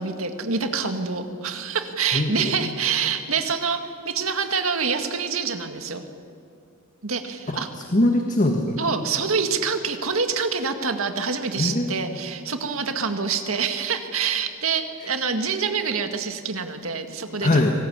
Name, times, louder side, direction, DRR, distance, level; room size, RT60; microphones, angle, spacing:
voice 1, 0.0-6.0 7.0-7.7 8.8-17.6, right 5 dB, 75° right, 6 dB, 1.9 m, -26 dB
voice 2, 2.1-2.5 7.5-8.8 11.6-11.9 17.4-17.7, left 1 dB, 40° left, 3 dB, 1.7 m, -22 dB
24.5 x 18.5 x 8.9 m, 2.4 s
head